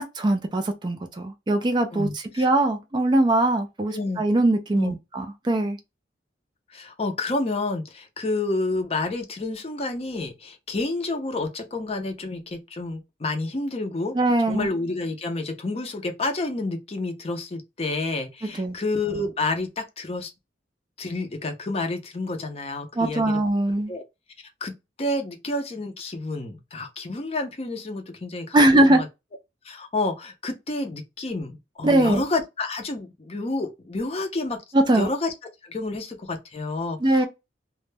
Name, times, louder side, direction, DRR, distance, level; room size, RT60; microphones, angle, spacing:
voice 1, 0.1-5.8 14.1-14.7 18.4-18.8 23.0-23.9 28.5-29.0 31.8-32.2 34.7-35.1 37.0-37.3, right 1 dB, 25° right, 0.3 m, -21 dB
voice 2, 1.9-2.5 3.9-4.2 4.7-5.0 6.7-14.1 14.5-20.3 21.0-23.4 23.9-24.0 24.6-29.1 29.6-34.6 34.9-35.3 35.6-37.3, left 2 dB, 35° left, 0.5 m, -29 dB
2.1 x 2.1 x 3.1 m
head